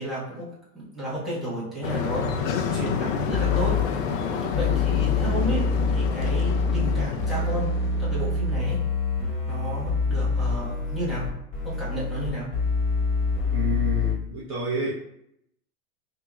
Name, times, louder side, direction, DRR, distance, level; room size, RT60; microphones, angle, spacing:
voice 1, 0.0-3.8 4.5-8.8 9.5-11.3 11.6-12.5, right 1 dB, ahead, -10 dB, 1.3 m, -32 dB
sound 1, 1.8-8.3, left 6 dB, 55° left, 0.7 m, -29 dB
sound 2, 3.3-3.8 4.5-14.1, left 4 dB, 25° left, 1.5 m, -25 dB
voice 2, 13.5-14.9, right 3 dB, 30° right, -8 dB, 0.9 m, -29 dB
5.7 x 2.8 x 2.3 m, 0.79 s
hypercardioid pair, 140°, 47 cm